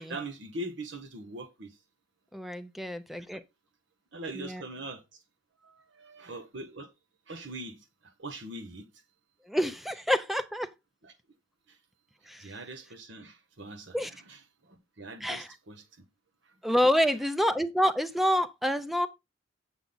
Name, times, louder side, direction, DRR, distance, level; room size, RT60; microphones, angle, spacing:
voice 1, 0.0-1.8 4.1-5.2 5.6-6.9 7.3-8.9 11.0-11.1 11.7-11.8 12.4-16.0 16.4-16.5, right 2 dB, 65° right, 1.2 m, -42 dB
voice 2, 2.3-3.4 4.4-4.6 9.5-10.7 12.3-12.5 13.9-14.1 15.2-15.5 16.6-19.1, equal, ahead, 0.6 m, -27 dB
8.2 x 7.1 x 4.0 m
head